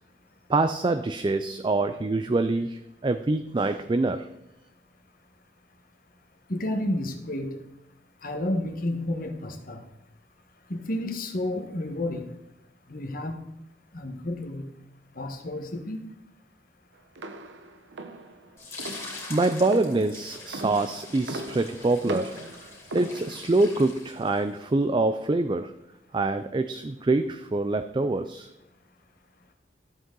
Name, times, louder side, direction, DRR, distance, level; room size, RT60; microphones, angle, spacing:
voice 1, 0.5-4.3 19.3-22.4 22.9-25.7 26.1-28.5, right 2 dB, 25° right, 10 dB, 0.4 m, -25 dB
voice 2, 6.5-7.6 8.2-9.8 10.7-12.3 12.9-13.4 13.9-14.7 15.1-16.0, left 1 dB, 50° left, 6 dB, 1.3 m, -31 dB
sound 1, 17.2-23.6, right 2 dB, 80° right, 0.9 m, -39 dB
sound 2, 18.6-24.6, left 3 dB, 15° left, 2.8 m, -43 dB
12.5 x 7.9 x 3.8 m, 0.86 s
head